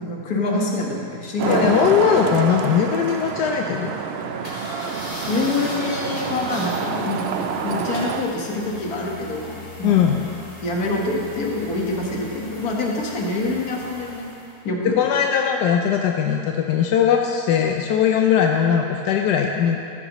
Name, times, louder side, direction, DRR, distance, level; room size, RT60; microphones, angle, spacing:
voice 1, 0.0-1.7 5.3-7.2 7.6-10.2 10.6-14.3 14.6-15.0, left 2 dB, 65° left, -1 dB, 1.8 m, -26 dB
voice 2, 1.4-4.0 9.8-10.3 14.8-19.8, left 8 dB, 85° left, 3 dB, 1.2 m, -20 dB
Traffic noise roadway noise, 1.4-8.2, right 6 dB, 90° right, 0.5 m, -27 dB
sound 1, 4.4-14.6, left 1 dB, 45° left, 2.4 m, -38 dB
14.0 x 10.5 x 3.0 m, 2.6 s
omnidirectional pair, 1.7 m